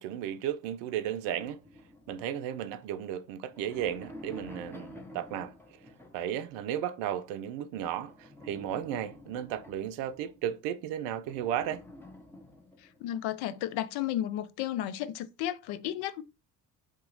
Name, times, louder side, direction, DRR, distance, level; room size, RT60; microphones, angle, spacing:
voice 1, 0.0-1.6 2.1-5.5 6.1-11.8, right 10 dB, 60° right, 0.6 m, -34 dB
sound 1, 1.2-2.8 3.4-6.5 8.0-10.6 11.2-13.1, left 1 dB, 5° left, 0.7 m, -49 dB
voice 2, 13.0-16.2, left 12 dB, 55° left, 0.5 m, -33 dB
2.9 x 2.4 x 3.8 m
hypercardioid pair, 55°, 50 cm